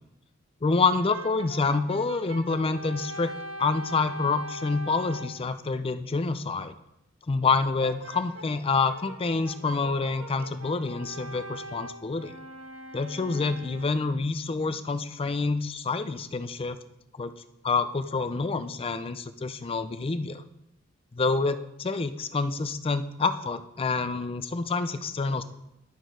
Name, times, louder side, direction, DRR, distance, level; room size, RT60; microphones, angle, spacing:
voice 1, 0.6-3.3 3.6-6.7 7.3-12.3 12.9-16.8 17.2-17.3 17.6-20.4 21.1-25.4, left 4 dB, 30° left, 11 dB, 0.4 m, -27 dB
Brass instrument, 0.9-5.4 7.8-14.1, right 1 dB, 85° right, 1.1 m, -42 dB
11.0 x 4.4 x 4.7 m, 0.85 s
head